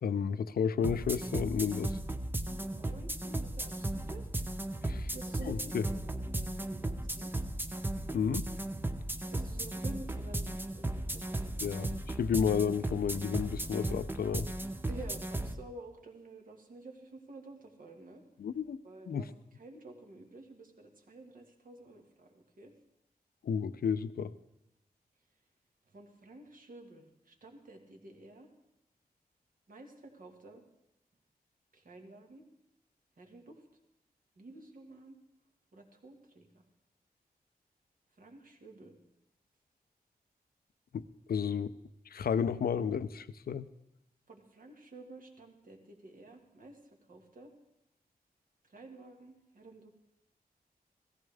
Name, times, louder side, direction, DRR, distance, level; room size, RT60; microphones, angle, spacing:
voice 1, 0.0-2.0 4.8-5.1 5.4-5.9 8.1-8.5 11.6-14.5 18.4-18.8 19.1-19.3 23.4-24.3 40.9-41.0 41.3-41.7 42.1-43.7, left 7 dB, 70° left, 14 dB, 0.5 m, -32 dB
sound 1, 0.8-15.6, right 1 dB, 15° right, 0.7 m, -36 dB
voice 2, 2.5-4.3 4.9-7.3 9.2-11.5 14.9-18.2 18.8-19.3 19.6-22.7 25.9-28.5 29.7-30.6 31.7-32.4 33.2-33.6 34.4-35.2 35.7-36.5 38.2-38.9 44.3-46.8 47.1-47.5 48.7-49.9, right 2 dB, 60° right, 2 dB, 1.9 m, -51 dB
16.5 x 14.0 x 3.5 m, 0.85 s
wide cardioid pair, 95°, 16 cm